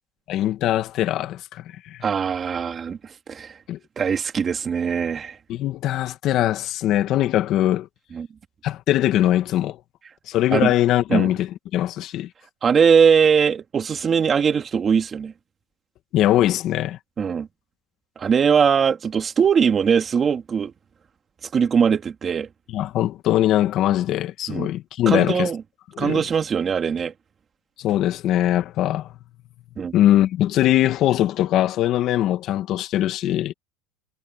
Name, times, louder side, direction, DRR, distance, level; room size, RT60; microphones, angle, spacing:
voice 1, 0.3-2.0 3.7-3.8 5.5-7.9 8.6-9.8 10.3-12.3 16.1-17.0 22.7-25.5 25.9-26.2 27.8-29.1 29.9-33.5, left 13 dB, 50° left, 1.5 m, -21 dB
voice 2, 2.0-3.6 4.0-5.4 8.1-8.3 10.5-10.7 11.1-11.3 12.6-15.3 17.2-17.5 18.2-20.7 21.5-22.5 24.5-24.7 25.1-25.6 26.0-27.1 29.8-29.9, right 6 dB, 25° right, 2.9 m, -21 dB
supercardioid pair, 130°, 0 cm